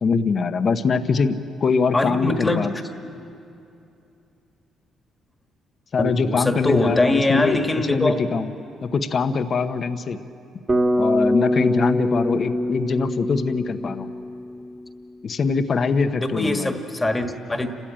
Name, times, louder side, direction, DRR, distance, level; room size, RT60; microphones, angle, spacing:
voice 1, 0.0-2.7 5.9-8.5 8.8-10.2 11.0-14.1 15.2-16.8, left 5 dB, 50° left, 9 dB, 1.0 m, -23 dB
voice 2, 1.9-2.7 6.0-8.1 16.2-17.7, left 2 dB, 15° left, 5 dB, 1.7 m, -22 dB
Bass guitar, 10.7-14.8, left 1 dB, 30° right, 2.2 m, -23 dB
29.5 x 13.5 x 8.9 m, 2.7 s
cardioid pair, 90°, 0 cm